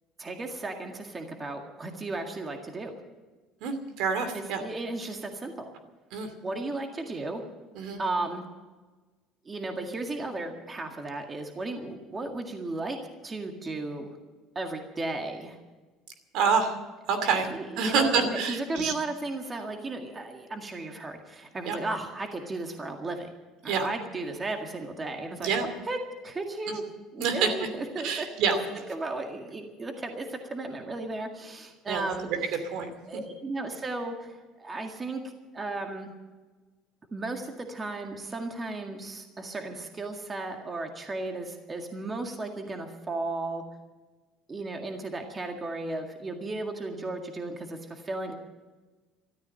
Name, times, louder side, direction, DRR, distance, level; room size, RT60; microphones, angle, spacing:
voice 1, 0.2-2.9 4.3-5.7 6.4-7.4 8.0-8.5 9.5-13.0 13.2-14.1 14.6-15.6 17.2-23.3 23.6-25.5 25.9-26.0 26.2-26.8 27.1-28.6 28.9-32.3 33.1-36.1 37.1-43.6 44.5-48.3, right 2 dB, 20° right, 4 dB, 1.9 m, -35 dB
voice 2, 3.6-4.6 6.1-6.3 7.7-8.0 16.3-16.7 17.1-17.5 17.8-18.9 21.7-21.8 23.7-23.9 25.4-25.7 27.2-27.7 28.0-28.7 31.9-32.4 32.6-33.2, right 5 dB, 70° right, 9 dB, 2.6 m, -27 dB
13.5 x 13.5 x 7.6 m, 1.3 s
cardioid pair, 135°, 0 cm